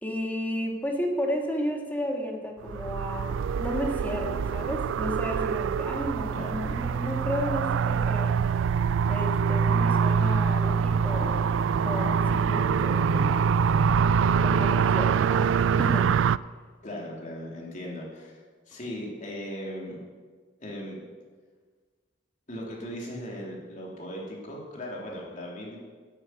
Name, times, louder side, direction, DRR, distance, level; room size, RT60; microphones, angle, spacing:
voice 1, 0.0-8.7 9.1-11.4 11.8-13.5 14.4-16.1, left 1 dB, 10° left, 0 dB, 2.2 m, -33 dB
sound 1, 2.7-16.4, right 6 dB, 85° right, 0.3 m, -24 dB
voice 2, 6.3-6.6 16.8-18.4 18.7-19.9 20.6-21.0 22.5-25.8, equal, 40° left, -3 dB, 3.4 m, -38 dB
13.0 x 8.8 x 9.7 m, 1.5 s
head